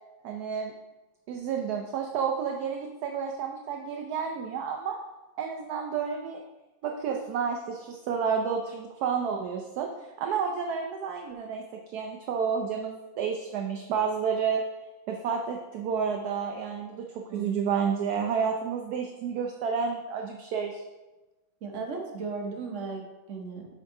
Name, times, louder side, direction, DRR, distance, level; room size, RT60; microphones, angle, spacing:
voice 1, 0.2-0.7 1.3-5.0 5.4-6.4 6.8-9.9 10.2-11.6 11.9-14.6 15.1-17.1 17.3-20.8, right 6 dB, 70° right, 2 dB, 0.9 m, -30 dB
voice 2, 17.3-17.6 21.6-23.7, right 4 dB, 50° right, 2 dB, 1.0 m, -36 dB
7.2 x 3.6 x 4.7 m, 1.1 s
omnidirectional pair, 2.1 m